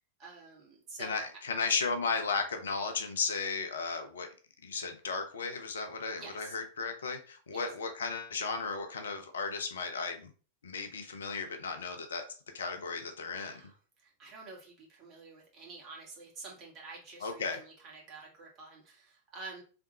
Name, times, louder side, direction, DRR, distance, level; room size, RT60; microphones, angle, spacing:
voice 1, 0.2-1.3 6.2-6.6 7.5-7.6 13.4-13.7 14.0-19.6, right 3 dB, 35° right, -1 dB, 2.0 m, -49 dB
voice 2, 1.0-4.3 4.6-10.3 10.6-12.2 12.5-13.6 17.2-17.6, left 4 dB, 65° left, 6 dB, 0.8 m, -35 dB
3.6 x 3.4 x 4.1 m, 0.39 s
figure-of-eight pair, 90°, 0 cm